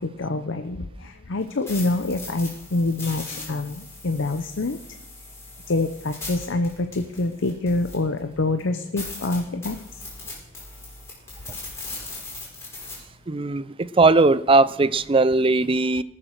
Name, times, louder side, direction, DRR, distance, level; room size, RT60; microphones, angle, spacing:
voice 1, 0.0-4.8 5.7-10.0, left 2 dB, 60° left, 7 dB, 0.7 m, -26 dB
sound 1, 1.4-8.2 8.6-8.7 9.0-12.9, left 2 dB, 15° left, 5.9 m, -39 dB
voice 2, 13.3-16.0, right 3 dB, 25° right, 16 dB, 0.4 m, -19 dB
19.0 x 7.6 x 6.5 m, 0.86 s
head